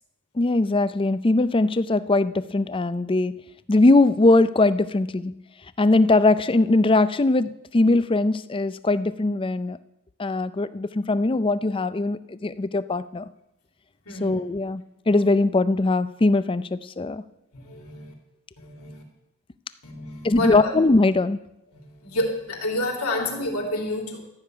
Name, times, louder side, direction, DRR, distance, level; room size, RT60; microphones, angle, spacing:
voice 1, 0.4-3.4 3.7-5.4 5.8-9.8 10.2-13.3 14.2-17.2 20.2-21.4, left 2 dB, 25° left, 15 dB, 0.4 m, -21 dB
voice 2, 14.0-14.4 17.5-18.1 18.6-19.0 19.8-20.7 21.7-24.2, left 1 dB, 75° left, 1 dB, 3.2 m, -29 dB
14.0 x 6.8 x 9.1 m, 0.87 s
head